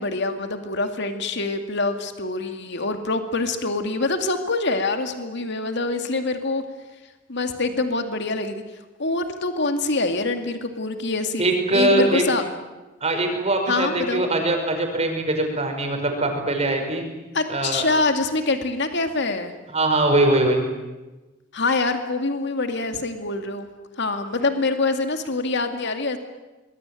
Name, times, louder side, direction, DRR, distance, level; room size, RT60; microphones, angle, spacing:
voice 1, 0.0-6.6 7.3-8.6 9.0-12.4 13.7-14.2 17.3-19.5 21.5-23.7 24.0-26.2, left 3 dB, 60° left, 7 dB, 2.3 m, -25 dB
voice 2, 11.4-12.2 13.0-17.1 17.5-17.9 19.7-20.6, right 2 dB, 30° right, 3 dB, 5.5 m, -21 dB
25.0 x 22.0 x 9.2 m, 1.1 s
head